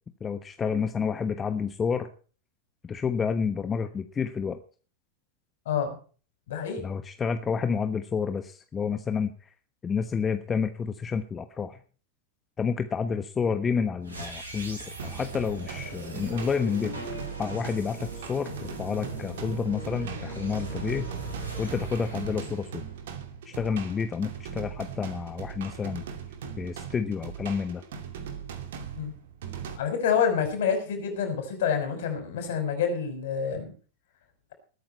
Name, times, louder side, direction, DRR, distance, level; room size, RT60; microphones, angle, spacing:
voice 1, 0.2-2.1 2.9-4.6 6.8-9.5 9.8-11.8 12.6-17.1 17.4-21.1 21.6-22.8 23.5-26.0 26.6-27.8, left 6 dB, 20° left, 9 dB, 1.1 m, -29 dB
voice 2, 5.7-6.0 6.5-6.8 28.9-29.1 29.8-33.7, left 7 dB, 55° left, 6 dB, 5.6 m, -27 dB
sound 1, 14.0-23.2, right 3 dB, 75° right, 7.1 m, -39 dB
sound 2, 15.0-29.8, right 7 dB, 55° right, 2.6 m, -40 dB
20.5 x 9.5 x 4.4 m, 0.40 s
figure-of-eight pair, 90°, 0 cm